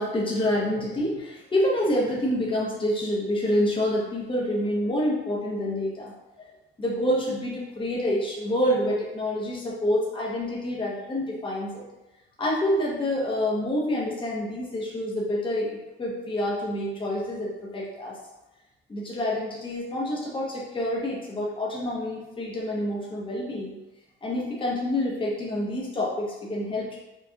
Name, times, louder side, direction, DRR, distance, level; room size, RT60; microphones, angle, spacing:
voice 1, 0.0-6.5 6.8-11.8 12.4-18.2 18.9-23.8 24.2-27.0, left 1 dB, 25° left, -4 dB, 1.0 m, -27 dB
4.5 x 2.5 x 2.8 m, 1.0 s
cardioid pair, 90°, 20 cm